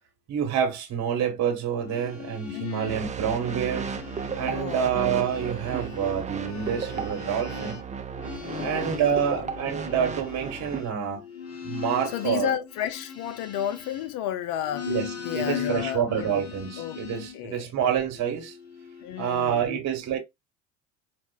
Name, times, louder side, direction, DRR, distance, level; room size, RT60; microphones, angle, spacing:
voice 1, 0.3-3.9 4.4-7.8 8.6-11.2 11.6-12.5 14.9-18.6 19.2-20.2, right 8 dB, 45° right, 1.3 m, -27 dB
sound 1, 1.7-4.5 4.8-14.3 14.6-17.4 18.1-19.3, left 7 dB, 40° left, 1.9 m, -39 dB
voice 2, 2.5-3.0 4.4-4.9 8.4-9.4 12.1-16.4 16.8-17.0 17.3-17.7 19.0-19.8, left 10 dB, 60° left, 0.6 m, -33 dB
sound 2, 2.9-10.8, right 5 dB, 20° right, 0.7 m, -34 dB
4.8 x 2.4 x 2.3 m
supercardioid pair, 85°, 36 cm